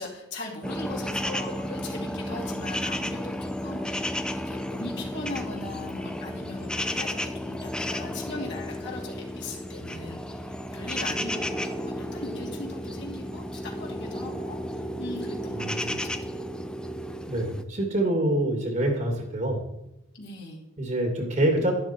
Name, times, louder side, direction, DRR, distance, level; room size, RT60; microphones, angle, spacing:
voice 1, 0.0-16.5 20.1-20.6, left 2 dB, 55° left, -2 dB, 3.2 m, -39 dB
sound 1, 0.6-17.6, equal, 5° left, 0.5 m, -33 dB
voice 2, 15.5-16.0 17.3-19.7 20.8-21.7, right 1 dB, 35° right, 2 dB, 2.1 m, -26 dB
12.5 x 12.0 x 4.4 m, 0.89 s
head